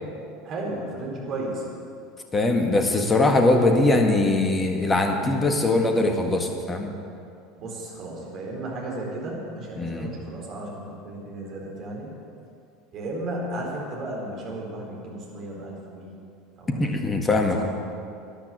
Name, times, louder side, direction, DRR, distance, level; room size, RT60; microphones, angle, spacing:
voice 1, 0.4-1.7 7.6-12.1 12.9-16.1 16.6-17.6, right 1 dB, 40° right, -2 dB, 4.2 m, -34 dB
voice 2, 2.3-6.9 9.8-10.1 16.7-17.6, left 2 dB, 20° left, 4 dB, 1.8 m, -21 dB
13.5 x 10.5 x 7.3 m, 2.4 s
figure-of-eight pair, 70°, 0 cm